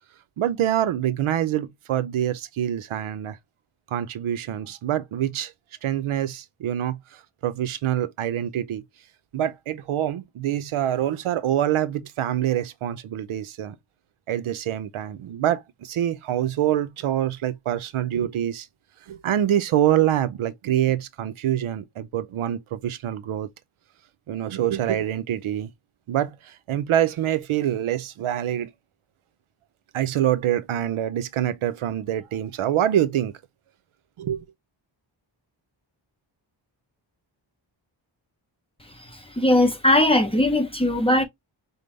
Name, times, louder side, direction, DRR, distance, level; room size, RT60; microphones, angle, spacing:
voice 1, 0.4-3.4 3.9-5.5 5.8-7.0 7.4-8.8 9.3-13.8 14.3-18.7 19.1-23.5 24.3-25.7 26.1-28.7 29.9-33.3 34.2-34.4, right 11 dB, 80° right, 0.6 m, -25 dB
voice 2, 39.4-41.2, left 1 dB, 10° left, 0.7 m, -19 dB
5.3 x 2.1 x 3.1 m
wide cardioid pair, 170°, 48 cm